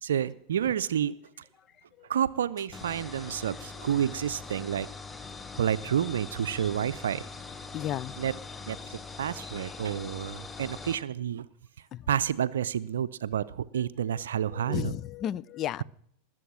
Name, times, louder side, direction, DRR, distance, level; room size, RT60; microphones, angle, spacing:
voice 1, 0.0-1.2 2.1-4.9 5.6-7.2 8.2-8.3 8.7-8.8 9.2-11.5 12.1-14.9, right 9 dB, 75° right, 0.5 m, -29 dB
voice 2, 1.6-2.1 6.7-6.9 7.7-8.2 11.9-12.1 14.1-14.2 14.5-15.8, left 11 dB, 35° left, 0.4 m, -35 dB
sound 1, 2.7-11.0, left 4 dB, 15° left, 0.9 m, -42 dB
20.5 x 7.7 x 6.2 m
hypercardioid pair, 90°, 0 cm